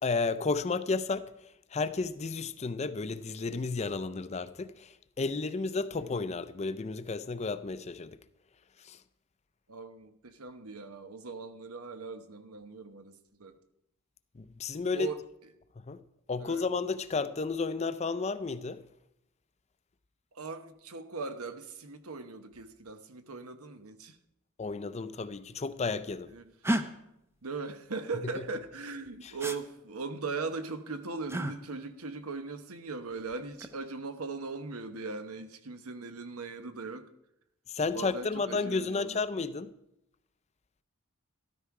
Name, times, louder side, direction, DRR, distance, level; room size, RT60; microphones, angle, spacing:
voice 1, 0.0-1.3 1.7-8.2 8.8-9.0 14.4-15.1 15.9-16.0 16.3-18.8 24.6-26.3 28.4-28.5 29.2-29.3 37.7-39.7, left 4 dB, 30° left, 0.5 m, -32 dB
voice 2, 9.7-13.6 14.9-15.2 16.4-16.7 20.3-24.2 26.3-26.5 27.4-37.1 37.9-39.3, right 4 dB, 90° right, 1.0 m, -39 dB
sound 1, 26.6-26.8 29.4-29.6 31.3-31.5 33.3-33.7, right 1 dB, 10° right, 0.6 m, -30 dB
13.0 x 12.5 x 4.8 m
head